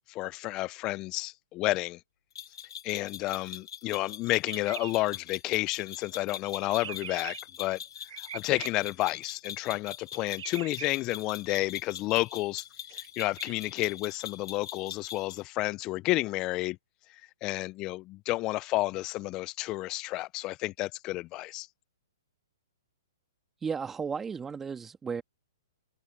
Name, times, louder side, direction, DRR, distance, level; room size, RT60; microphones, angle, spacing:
voice 1, 0.1-2.0 2.8-7.8 8.2-16.8 17.4-21.7, left 19 dB, 30° left, 0.4 m, -31 dB
sound 1, 2.4-15.4, left 9 dB, 70° left, 1.5 m, -43 dB
sound 2, 4.5-4.9 6.5-7.4 8.1-8.7 10.1-10.9 12.9-13.5, right 10 dB, 65° right, 0.8 m, -42 dB
voice 2, 23.6-25.2, right 6 dB, 10° right, 2.1 m, -34 dB
open air
hypercardioid pair, 140°, 2 cm